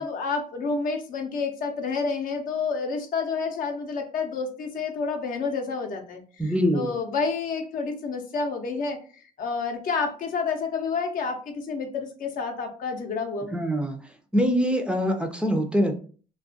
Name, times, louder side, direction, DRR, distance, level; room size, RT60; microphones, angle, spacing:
voice 1, 0.0-9.0 9.4-13.6, left 4 dB, 65° left, 4 dB, 0.5 m, -29 dB
voice 2, 6.4-7.0 13.5-14.0 14.3-16.0, equal, 5° right, 5 dB, 0.4 m, -24 dB
2.3 x 2.1 x 2.6 m, 0.40 s
cardioid pair, 85°, 15 cm